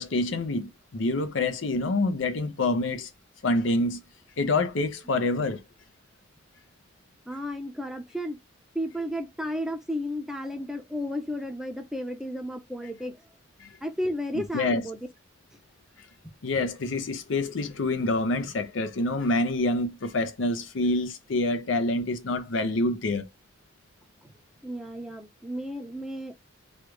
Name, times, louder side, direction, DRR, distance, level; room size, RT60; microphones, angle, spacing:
voice 1, 0.0-3.1 3.4-4.0 4.4-5.6 13.6-13.7 14.5-14.8 16.4-23.3, left 2 dB, 85° left, 0.6 m, -27 dB
voice 2, 7.3-8.4 8.7-13.2 13.8-15.0 24.2-24.3 24.6-26.3, equal, ahead, 0.5 m, -33 dB
3.1 x 2.4 x 3.1 m
head